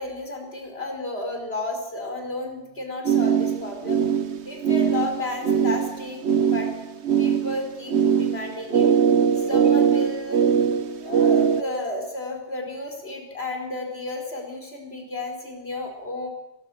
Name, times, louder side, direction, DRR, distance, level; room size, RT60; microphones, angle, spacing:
voice 1, 0.0-4.0 4.4-6.7 7.2-8.9 9.3-10.4 10.9-16.3, left 2 dB, 55° left, 3 dB, 5.1 m, -32 dB
sound 1, 3.1-11.6, right 7 dB, 65° right, 1.4 m, -21 dB
23.5 x 21.5 x 6.5 m, 0.97 s
omnidirectional pair, 1.2 m